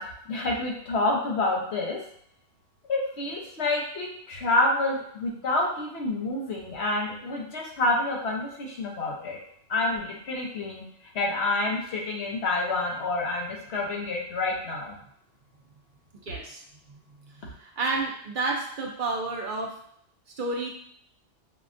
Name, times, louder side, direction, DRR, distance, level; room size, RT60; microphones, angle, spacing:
voice 1, 0.0-2.0 2.9-9.4 9.7-10.8 11.1-15.0, left 2 dB, 70° left, -2 dB, 1.1 m, -28 dB
voice 2, 16.2-16.6 16.9-17.0 17.3-19.7 20.4-20.7, right 3 dB, 55° right, 0 dB, 0.6 m, -30 dB
5.5 x 2.2 x 2.5 m, 0.66 s
omnidirectional pair, 1.2 m